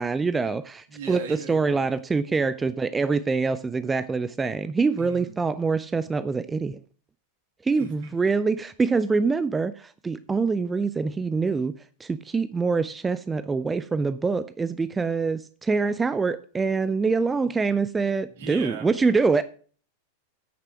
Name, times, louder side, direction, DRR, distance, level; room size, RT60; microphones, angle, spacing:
voice 1, 0.0-6.8 7.6-11.7 12.0-19.4, right 4 dB, 15° right, 13 dB, 0.4 m, -25 dB
voice 2, 0.9-1.9 5.0-5.4 7.8-8.1 18.3-18.9, right 5 dB, 55° right, 3 dB, 2.7 m, -38 dB
8.8 x 6.8 x 6.1 m, 0.41 s
figure-of-eight pair, 90°, 0 cm